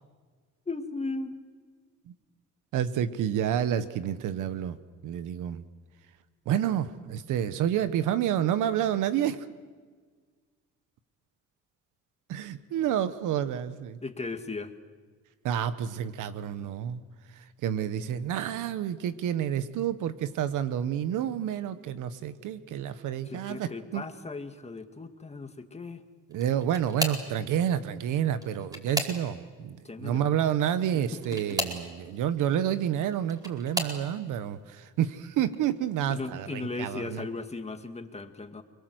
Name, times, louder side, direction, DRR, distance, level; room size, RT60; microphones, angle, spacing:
voice 1, 0.7-1.3 14.0-14.7 23.3-26.0 29.8-30.3 30.9-31.0 36.1-38.6, left 3 dB, 20° left, 6 dB, 2.2 m, -37 dB
voice 2, 2.7-4.8 5.0-5.6 6.5-9.5 12.3-14.0 15.4-17.0 17.6-24.0 26.3-37.2, right 10 dB, 90° right, 12 dB, 1.3 m, -29 dB
sound 1, 26.3-27.4 28.3-29.6 31.2-31.9 32.9-34.0 34.8-35.1 35.5-35.7 37.0-37.1, equal, 10° right, 4.8 m, -34 dB
30.0 x 22.0 x 7.9 m, 1.5 s
cardioid pair, 90°, 30 cm